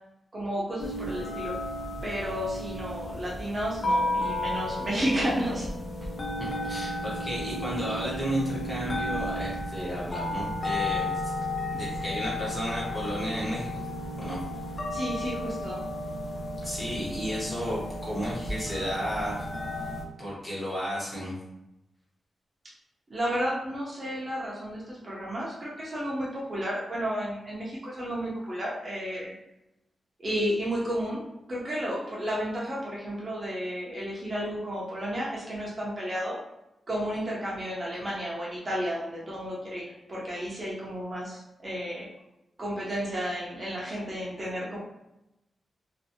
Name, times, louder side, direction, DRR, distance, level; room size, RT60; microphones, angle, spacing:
voice 1, 0.3-1.6 2.0-5.7 14.9-15.8 23.1-29.4 30.2-36.4 36.9-42.1 42.6-44.8, equal, 30° right, -5 dB, 0.5 m, -32 dB
sound 1, 0.8-20.0, left 1 dB, 45° left, 0.5 m, -33 dB
voice 2, 6.6-11.3 11.7-13.8 14.2-14.4 16.6-19.5 20.2-21.3, equal, 20° left, -7 dB, 1.0 m, -33 dB
2.5 x 2.5 x 2.6 m, 0.90 s
wide cardioid pair, 160°, 0 cm